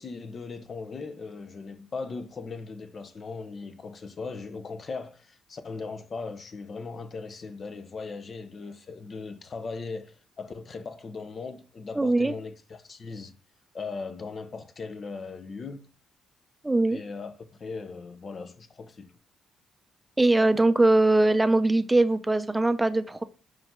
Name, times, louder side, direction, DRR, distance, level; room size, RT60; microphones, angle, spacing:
voice 1, 0.0-13.3 13.7-15.9 16.9-19.1, left 4 dB, 40° left, 0.9 m, -38 dB
voice 2, 11.9-12.3 16.6-17.0 20.2-23.2, right 2 dB, 10° right, 0.7 m, -21 dB
5.5 x 5.3 x 3.7 m
cardioid pair, 90°, 0 cm